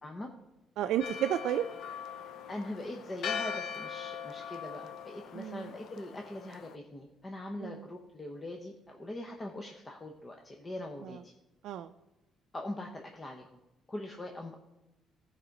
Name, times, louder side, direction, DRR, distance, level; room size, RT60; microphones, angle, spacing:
voice 1, 0.8-1.7 5.3-5.7 7.6-7.9 11.0-11.2 11.6-11.9, right 11 dB, 75° right, 7 dB, 0.4 m, -32 dB
Church bell, 1.0-6.8, left 7 dB, 70° left, 0.6 m, -41 dB
voice 2, 2.5-11.3 12.5-13.5 13.9-14.6, left 1 dB, 20° left, 2 dB, 0.9 m, -42 dB
14.5 x 4.9 x 5.3 m, 0.98 s
cardioid pair, 135°, 0 cm